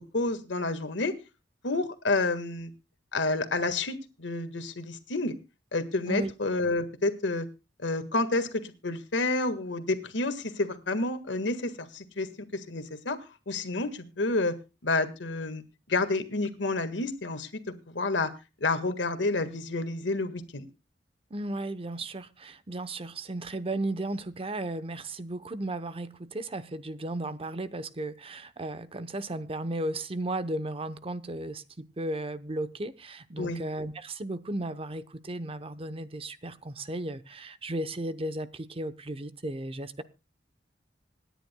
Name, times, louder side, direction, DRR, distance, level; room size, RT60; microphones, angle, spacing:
voice 1, 0.1-1.1 1.6-2.7 3.1-5.3 5.7-7.5 7.8-13.2 13.5-14.6 14.8-18.3 18.6-20.6 33.4-33.6, left 2 dB, 85° left, 1.6 m, -29 dB
voice 2, 21.3-40.0, right 1 dB, 30° right, 0.8 m, -35 dB
26.0 x 10.0 x 2.2 m
head